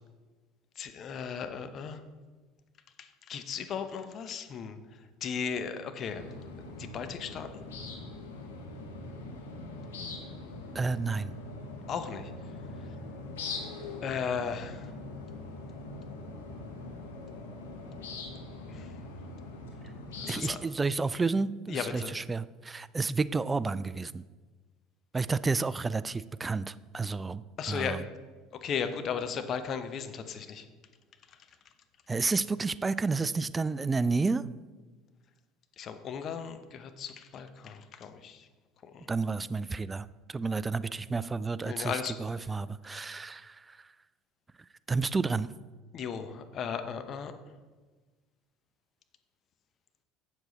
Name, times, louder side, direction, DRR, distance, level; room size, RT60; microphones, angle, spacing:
voice 1, 0.8-2.0 3.0-4.8 5.2-6.2 6.8-7.5 11.9-12.3 14.0-14.9 18.7-18.9 20.2-20.6 21.7-22.1 27.6-28.0 28.6-30.7 35.8-38.5 38.8-39.1 41.6-42.1 45.9-47.3, left 7 dB, 45° left, 9 dB, 0.8 m, -36 dB
sound 1, 6.0-20.5, left 3 dB, 80° left, 1.1 m, -42 dB
voice 2, 10.7-11.3 20.3-24.2 25.1-28.0 32.1-34.4 39.1-43.9 44.9-45.5, right 4 dB, 20° right, 16 dB, 0.3 m, -31 dB
8.0 x 7.2 x 4.0 m, 1.3 s
hypercardioid pair, 70°, 0 cm